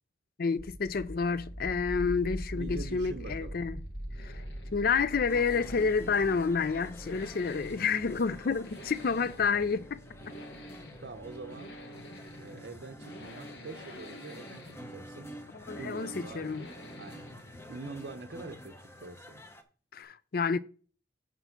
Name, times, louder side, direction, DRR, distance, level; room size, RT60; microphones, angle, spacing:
voice 1, 0.4-3.8 4.2-4.4 4.7-10.0 10.3-10.4 15.5-16.7 19.9-20.6, left 5 dB, 50° left, 0.4 m, -29 dB
sound 1, 0.6-11.3, right 1 dB, 5° right, 1.1 m, -43 dB
sound 2, 1.5-19.6, left 1 dB, 70° left, 1.5 m, -51 dB
voice 2, 2.6-3.6 11.0-11.7 12.4-15.3 15.8-16.5 17.0-17.3 17.7-19.4, right 3 dB, 60° right, 0.6 m, -45 dB
sound 3, 5.3-19.6, right 1 dB, 15° left, 0.7 m, -49 dB
8.1 x 4.5 x 5.8 m
head